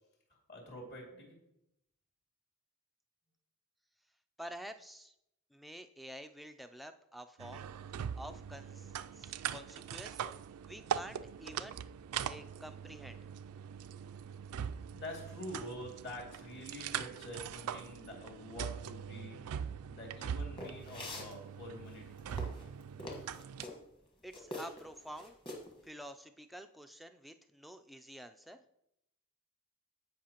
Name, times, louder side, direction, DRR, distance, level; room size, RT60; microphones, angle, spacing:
voice 1, 0.5-1.4 14.9-22.2, left 1 dB, 45° left, -1 dB, 2.5 m, -47 dB
voice 2, 4.4-5.1 5.5-7.7 8.2-10.2 10.7-11.8 12.2-13.2 24.2-25.4 25.8-28.6, equal, ahead, 6 dB, 0.3 m, -49 dB
sound 1, 7.4-23.6, right 8 dB, 85° right, 0.3 m, -42 dB
sound 2, 20.6-21.3 21.9-23.8 24.3-24.9 25.2-25.7, left 1 dB, 20° left, 1.4 m, -44 dB
16.0 x 5.6 x 2.9 m, 0.81 s
head